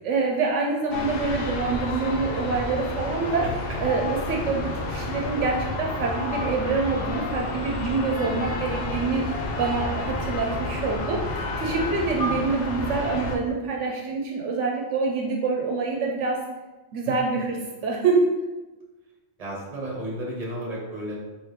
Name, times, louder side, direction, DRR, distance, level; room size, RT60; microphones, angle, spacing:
voice 1, 0.0-3.4 3.8-9.2 9.6-11.2 11.6-16.4 16.9-17.6 17.8-18.3, right 4 dB, 80° right, -1 dB, 0.9 m, -26 dB
sound 1, 0.9-13.4, left 2 dB, 65° left, 0.7 m, -30 dB
voice 2, 3.2-3.8 17.0-17.1 19.4-21.2, right 1 dB, 35° right, -3 dB, 1.1 m, -33 dB
4.4 x 2.6 x 3.3 m, 1.1 s
omnidirectional pair, 1.2 m